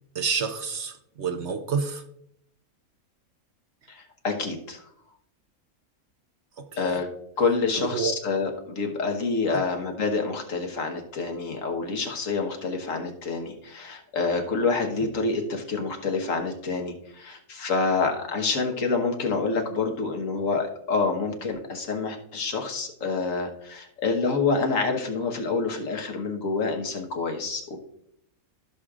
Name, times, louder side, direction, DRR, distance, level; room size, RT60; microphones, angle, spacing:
voice 1, 0.1-2.0 6.6-7.0 7.8-8.1 9.5-9.7, right 6 dB, 60° right, 0.9 m, -29 dB
voice 2, 3.9-4.8 6.8-7.1 7.4-27.8, left 4 dB, 65° left, 1.6 m, -27 dB
14.5 x 6.4 x 2.4 m
omnidirectional pair, 1.5 m